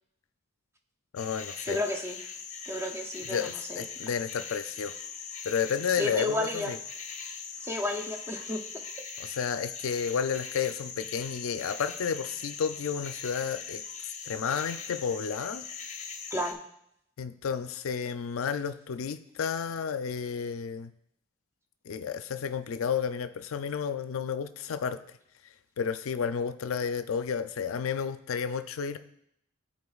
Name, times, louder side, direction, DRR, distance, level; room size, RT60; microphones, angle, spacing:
voice 1, 1.1-1.8 3.3-5.0 5.4-6.8 9.2-13.8 14.3-15.7 17.2-20.9 21.9-25.0 25.8-29.0, left 6 dB, 85° left, 11 dB, 0.4 m, -31 dB
sound 1, 1.2-16.5, left 6 dB, 35° left, 0.7 m, -41 dB
voice 2, 1.7-2.2 2.7-3.8 6.0-6.7 7.6-8.6 16.3-16.6, left 1 dB, 15° right, 3 dB, 0.6 m, -32 dB
12.5 x 4.3 x 2.4 m, 0.74 s
head